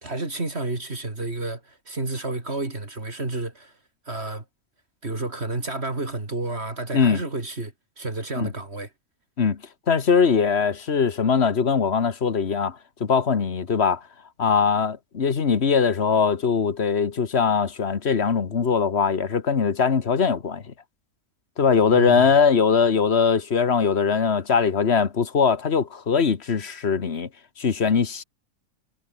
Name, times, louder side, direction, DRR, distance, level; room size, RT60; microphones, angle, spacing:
voice 1, 0.0-3.7 4.1-4.4 5.0-8.9 21.9-22.3, right 2 dB, 50° right, 3.8 m, -30 dB
voice 2, 9.9-14.0 14.4-20.6 21.6-27.3 27.6-28.2, left 6 dB, 50° left, 1.6 m, -21 dB
omnidirectional pair, 1.4 m